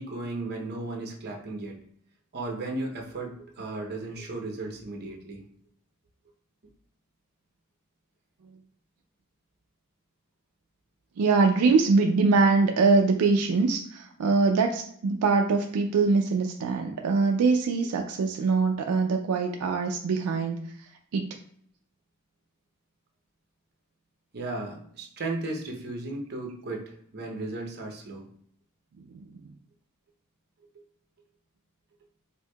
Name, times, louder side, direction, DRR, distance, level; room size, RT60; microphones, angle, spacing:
voice 1, 0.0-1.8 2.3-5.4 24.3-28.3, right 2 dB, 50° right, 1 dB, 0.7 m, -35 dB
voice 2, 11.2-20.6 21.1-21.4 29.1-29.3, right 4 dB, 80° right, 3 dB, 0.4 m, -23 dB
4.5 x 2.6 x 2.2 m, 0.63 s
head